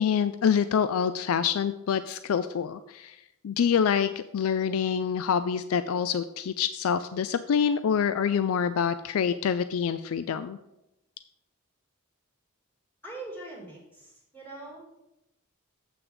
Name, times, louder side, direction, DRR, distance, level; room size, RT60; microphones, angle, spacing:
voice 1, 0.0-3.2 3.4-10.6, left 7 dB, 70° left, 13 dB, 0.4 m, -26 dB
voice 2, 13.0-14.8, right 2 dB, 10° left, -5 dB, 3.1 m, -42 dB
7.9 x 6.1 x 5.0 m, 0.88 s
head